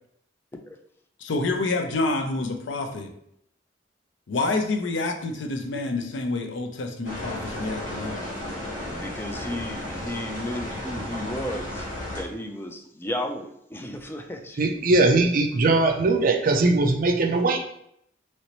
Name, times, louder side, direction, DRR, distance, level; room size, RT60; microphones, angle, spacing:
voice 1, 1.2-3.1 4.3-8.3, left 2 dB, 75° left, 5 dB, 0.5 m, -28 dB
sound 1, 7.0-12.2, left 1 dB, 45° left, 1.2 m, -34 dB
voice 2, 8.8-14.6, left 1 dB, 10° left, 4 dB, 0.3 m, -34 dB
voice 3, 14.6-17.6, right 3 dB, 50° right, 4 dB, 0.4 m, -20 dB
3.0 x 2.9 x 2.9 m, 0.73 s
head